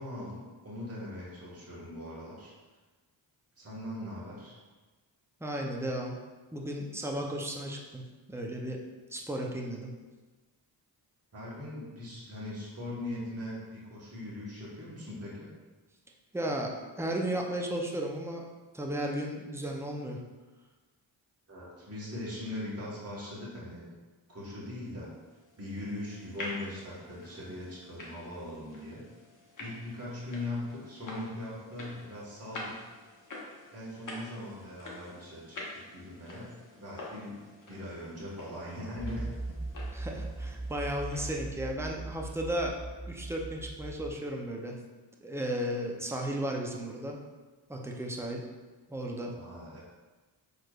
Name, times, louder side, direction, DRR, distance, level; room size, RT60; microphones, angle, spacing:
voice 1, 0.0-2.5 3.6-4.5 11.3-15.5 21.5-23.9 24.3-25.1 25.6-29.0 29.6-32.8 33.7-37.4 37.7-39.6 46.0-46.1 49.3-49.8, left 1 dB, 30° right, -7 dB, 1.4 m, -40 dB
voice 2, 5.4-6.2 6.5-8.8 9.1-9.9 16.3-18.5 18.7-20.2 39.9-42.8 43.1-44.8 45.2-47.2 47.7-48.4 48.9-49.3, right 1 dB, 5° right, 0 dB, 0.5 m, -34 dB
sound 1, 25.2-41.3, left 2 dB, 40° left, 1.0 m, -47 dB
sound 2, 39.0-44.1, right 2 dB, 15° left, 0.9 m, -39 dB
4.4 x 3.2 x 2.4 m, 1.3 s
cardioid pair, 55°, 46 cm